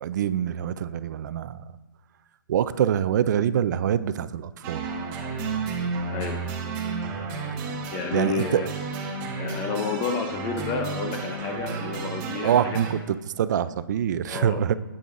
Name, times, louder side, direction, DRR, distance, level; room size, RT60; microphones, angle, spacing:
voice 1, 0.0-1.7 2.5-4.9 8.1-8.6 12.4-14.7, right 9 dB, 50° right, 15 dB, 0.4 m, -25 dB
sound 1, 4.6-12.9, right 4 dB, 25° right, 1.0 m, -32 dB
voice 2, 6.1-6.4 7.9-8.7 9.4-12.8 14.3-14.6, left 5 dB, 20° left, 6 dB, 0.4 m, -30 dB
8.8 x 8.5 x 2.5 m, 1.2 s
hypercardioid pair, 150°, 12 cm